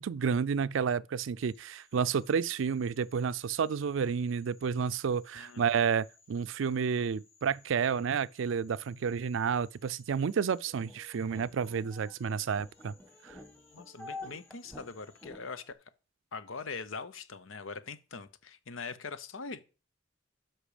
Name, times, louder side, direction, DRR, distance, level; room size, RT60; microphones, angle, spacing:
voice 1, 0.0-12.9 13.2-13.4, right 6 dB, 75° right, 0.4 m, -30 dB
Frog, 1.4-15.2, left 4 dB, 45° left, 3.6 m, -64 dB
sound 1, 10.6-15.7, left 2 dB, 10° left, 1.4 m, -49 dB
voice 2, 13.7-15.8 16.3-19.6, left 4 dB, 85° left, 0.8 m, -42 dB
10.0 x 6.0 x 5.0 m
head